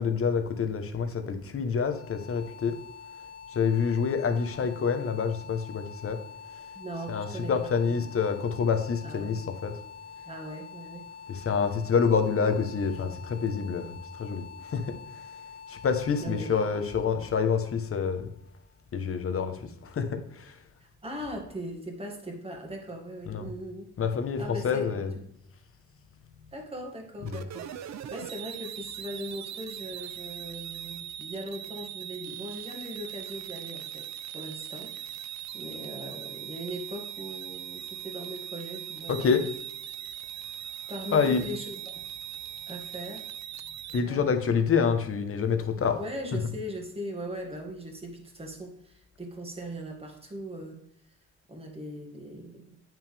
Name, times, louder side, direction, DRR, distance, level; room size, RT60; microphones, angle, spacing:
voice 1, 0.0-2.8 3.5-6.2 7.1-9.7 11.3-15.0 15.7-18.3 18.9-20.6 23.3-23.5 24.0-25.2 27.2-27.4 39.1-39.4 41.1-41.5 43.9-46.0 46.3-46.4, left 6 dB, 45° left, 7 dB, 1.2 m, -27 dB
sound 1, 1.8-18.7, left 6 dB, 65° left, 1.2 m, -46 dB
voice 2, 6.7-8.1 9.0-9.4 10.3-11.1 16.2-16.5 20.8-23.9 24.4-25.1 26.5-35.0 35.5-39.4 40.9-42.1 42.7-43.3 44.0-44.3 46.0-50.8 51.5-52.8, equal, 20° right, 1 dB, 2.2 m, -39 dB
sound 2, 27.3-44.0, right 11 dB, 65° right, 0.7 m, -40 dB
8.9 x 6.0 x 3.5 m, 0.74 s
cardioid pair, 90°, 30 cm